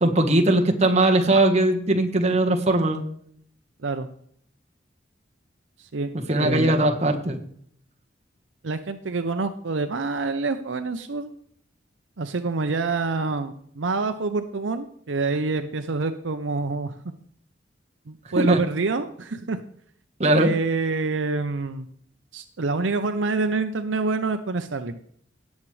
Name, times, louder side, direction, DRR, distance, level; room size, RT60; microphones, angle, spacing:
voice 1, 0.0-3.0 6.3-7.4 18.4-18.6 20.2-20.5, right 1 dB, 35° right, 3 dB, 1.3 m, -20 dB
voice 2, 6.4-6.9 8.6-11.3 12.2-17.0 18.1-19.6 20.4-21.9 22.3-25.0, right 3 dB, 75° right, 9 dB, 0.7 m, -27 dB
17.5 x 7.4 x 3.3 m, 0.63 s
head